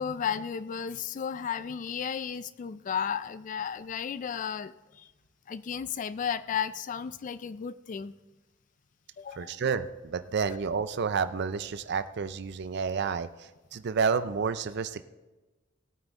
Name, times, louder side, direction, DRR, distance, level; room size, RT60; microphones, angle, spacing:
voice 1, 0.0-5.1 5.5-8.1 9.2-9.6 10.5-10.6, left 7 dB, 40° left, 15 dB, 0.3 m, -34 dB
voice 2, 9.4-15.0, right 5 dB, 60° right, 12 dB, 0.5 m, -30 dB
17.5 x 9.0 x 3.7 m, 1.1 s
head